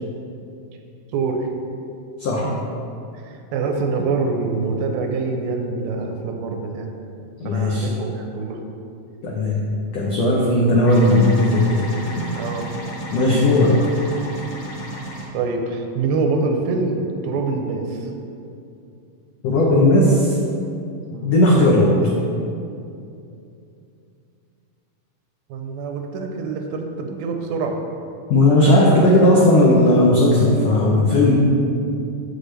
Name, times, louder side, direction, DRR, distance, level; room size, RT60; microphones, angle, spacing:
voice 1, 1.1-1.5 2.4-2.6 3.2-6.9 7.5-8.6 12.3-12.7 15.3-18.1 21.1-21.4 25.5-27.8 28.6-29.4, right 4 dB, 85° right, 3 dB, 2.4 m, -25 dB
voice 2, 7.4-7.9 9.2-9.6 9.9-11.8 13.1-13.7 19.4-20.4 21.2-21.9 28.3-31.3, left 1 dB, 85° left, -4 dB, 1.4 m, -16 dB
sound 1, 10.8-15.2, right 1 dB, 55° left, 2.3 m, -32 dB
8.0 x 7.9 x 3.3 m, 2.6 s
omnidirectional pair, 4.2 m